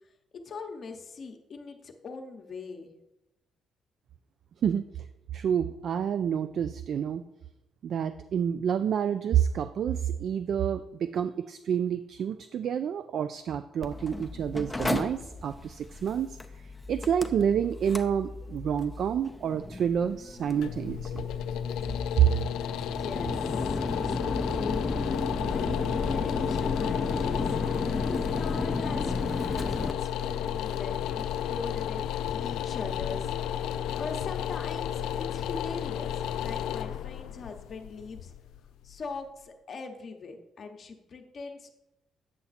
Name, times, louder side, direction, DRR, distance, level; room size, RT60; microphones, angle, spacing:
voice 1, 0.4-2.9 23.0-23.8 24.0-24.9 25.5-27.6 28.0-32.0 32.3-33.3 33.9-38.3 38.8-41.7, left 4 dB, 50° left, 3 dB, 0.9 m, -41 dB
voice 2, 5.3-7.2 7.8-16.4 16.9-21.3 22.2-22.3, right 8 dB, 65° right, 11 dB, 0.3 m, -28 dB
Mechanical fan, 13.8-29.9, left 2 dB, 10° left, 0.6 m, -34 dB
sound 1, 20.3-39.2, left 9 dB, 90° left, 0.4 m, -32 dB
8.7 x 5.7 x 4.1 m, 0.94 s
cardioid pair, 90°, 0 cm